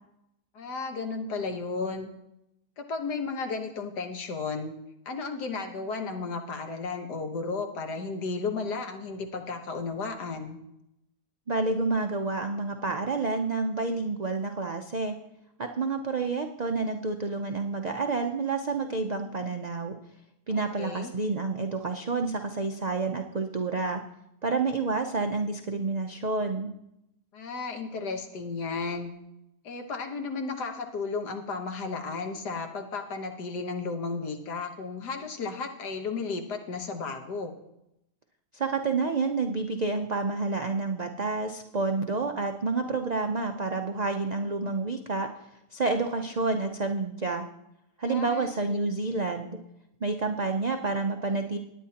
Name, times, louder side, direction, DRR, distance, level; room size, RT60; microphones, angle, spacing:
voice 1, 0.6-2.1 2.8-4.7 5.1-10.6 20.5-21.1 27.3-29.1 29.6-37.6 48.1-48.8, left 4 dB, 90° left, 5 dB, 1.8 m, -34 dB
voice 2, 11.5-15.1 15.6-20.0 20.5-24.0 24.4-26.7 38.5-45.3 45.7-47.4 48.0-49.6 50.0-51.6, right 3 dB, 85° right, 4 dB, 0.3 m, -29 dB
19.5 x 9.3 x 2.9 m, 0.83 s
omnidirectional pair, 1.7 m